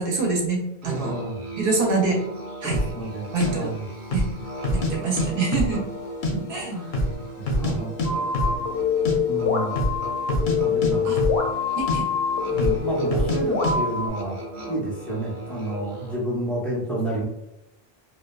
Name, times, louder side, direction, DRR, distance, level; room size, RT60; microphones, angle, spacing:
voice 1, 0.0-1.1 1.6-2.2 2.6-2.8 3.3-3.7 4.1-4.3 4.7-5.8 6.5-6.7 11.0-11.2 11.7-12.1, right 3 dB, 65° right, -1 dB, 0.8 m, -25 dB
voice 2, 0.8-1.4 2.6-3.9 6.3-7.0 7.4-8.0 9.3-9.7 10.5-11.3 12.5-14.4 14.7-17.2, right 1 dB, ahead, -5 dB, 0.5 m, -30 dB
Musical instrument, 0.8-16.4, right 1 dB, 90° right, 1.0 m, -37 dB
sound 1, 2.7-2.9 3.4-3.5 4.0-4.3 4.6-5.3 5.5-6.3 6.6-6.7 6.9-7.7 8.0-8.1 8.3-8.6 8.9-9.2 9.7-10.0 10.3-11.6 11.9-12.0 12.6-12.8 13.1-13.4 13.6-13.8, left 1 dB, 60° left, 0.6 m, -25 dB
sound 2, 8.0-14.1, left 6 dB, 90° left, 0.8 m, -25 dB
2.6 x 2.1 x 2.3 m, 0.90 s
omnidirectional pair, 1.1 m